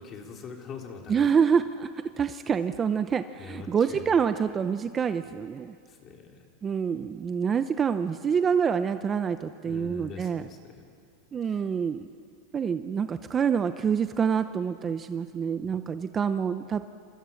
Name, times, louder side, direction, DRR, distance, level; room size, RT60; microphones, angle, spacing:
voice 1, 0.0-1.3 3.4-4.2 5.9-6.4 9.6-10.9 11.4-11.6 15.6-15.7, left 4 dB, 30° left, 2 dB, 3.8 m, -43 dB
voice 2, 1.1-5.7 6.6-10.4 11.3-12.1 12.5-16.9, right 7 dB, 20° right, 10 dB, 0.7 m, -26 dB
29.0 x 26.5 x 7.2 m, 2.3 s
supercardioid pair, 150°, 0 cm